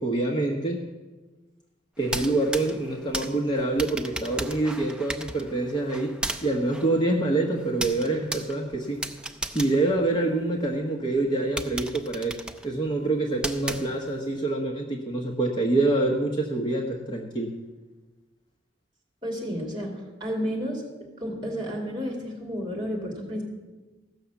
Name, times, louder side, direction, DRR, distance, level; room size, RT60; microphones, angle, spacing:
voice 1, 0.0-0.8 2.0-6.1 6.4-9.0 9.5-12.4 12.6-17.5, right 2 dB, 25° left, 0 dB, 1.0 m, -26 dB
sound 1, 2.0-10.7 11.2-11.3 11.6-14.3, right 1 dB, 5° right, 0.4 m, -36 dB
voice 2, 19.2-20.8 21.2-23.4, equal, 25° right, 0 dB, 2.6 m, -31 dB
15.0 x 6.3 x 7.0 m, 1.2 s
head